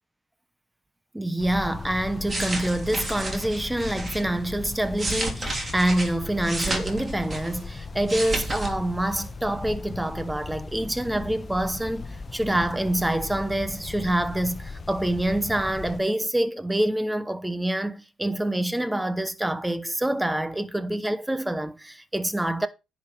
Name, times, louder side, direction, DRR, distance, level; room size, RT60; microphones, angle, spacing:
voice 1, 1.1-22.7, right 1 dB, 10° right, 0.9 m, -26 dB
sound 1, 1.4-16.0, left 4 dB, 35° left, 1.0 m, -38 dB
sound 2, 2.0-4.2 4.8-7.7 7.9-8.7 9.0-9.2, right 2 dB, 30° right, 2.9 m, -31 dB
10.5 x 5.1 x 4.6 m
cardioid pair, 90°, 0 cm